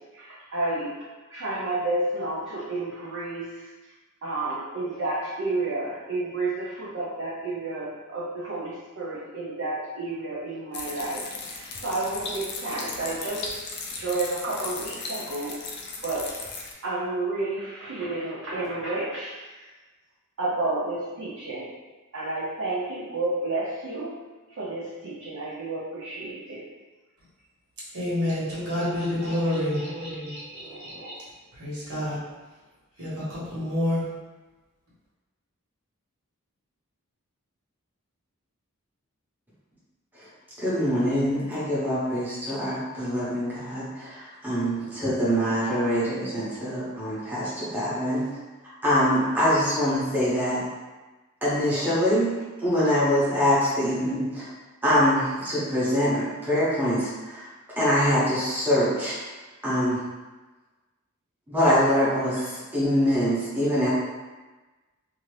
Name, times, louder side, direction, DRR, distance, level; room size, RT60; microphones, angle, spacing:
voice 1, 0.1-0.9 1.3-3.6 4.2-13.6 14.0-16.4 16.8-19.7 20.4-21.7 22.1-24.1 24.6-26.6 28.2-28.6 28.9-30.9, right 2 dB, 60° right, -7 dB, 0.6 m, -31 dB
sound 1, 10.7-16.7, left 4 dB, 50° left, 0.4 m, -36 dB
voice 2, 27.9-31.2 31.5-32.2 33.0-34.1, left 1 dB, 85° right, -8 dB, 1.3 m, -29 dB
voice 3, 40.6-48.3 48.8-50.6 51.4-54.5 54.8-57.5 57.8-59.2 59.6-60.0 61.5-63.9, equal, 10° right, -11 dB, 0.9 m, -24 dB
2.7 x 2.5 x 3.2 m, 1.2 s
head